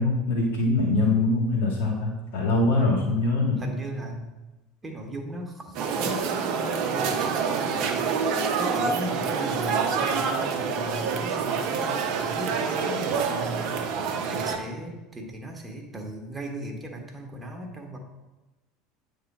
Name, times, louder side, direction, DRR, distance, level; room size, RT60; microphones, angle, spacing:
voice 1, 0.0-3.6, left 2 dB, 70° left, -2 dB, 1.9 m, -23 dB
voice 2, 3.6-4.3 4.8-18.0, right 1 dB, 20° right, 2 dB, 1.3 m, -37 dB
sound 1, 5.7-14.6, right 5 dB, 55° right, 0.8 m, -27 dB
8.7 x 3.5 x 4.2 m, 1.1 s
hypercardioid pair, 75°, 0 cm